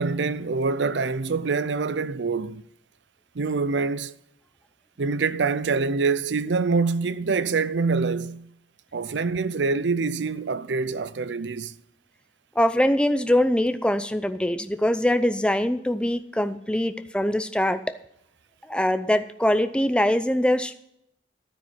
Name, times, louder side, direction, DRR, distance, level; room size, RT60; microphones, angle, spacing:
voice 1, 0.0-2.6 3.4-4.1 5.0-8.5 8.9-11.7, right 4 dB, 75° right, 0.6 m, -25 dB
voice 2, 12.6-17.9 18.7-20.7, left 1 dB, 5° left, 0.6 m, -23 dB
12.0 x 9.4 x 5.8 m
head